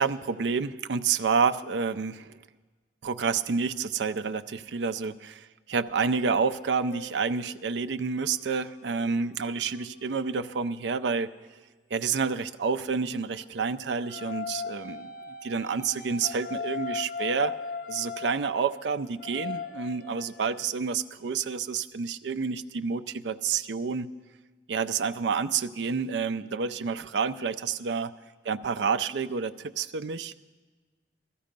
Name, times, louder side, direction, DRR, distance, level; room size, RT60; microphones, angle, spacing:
voice 1, 0.0-2.4 3.0-11.3 11.9-15.1 15.4-17.6 17.9-24.1 24.7-28.1 28.5-30.3, right 5 dB, 75° right, 10 dB, 0.5 m, -29 dB
sound 1, 6.0-11.2 13.1-20.7, left 5 dB, 50° left, 1.2 m, -40 dB
16.0 x 14.0 x 5.2 m, 1.3 s
head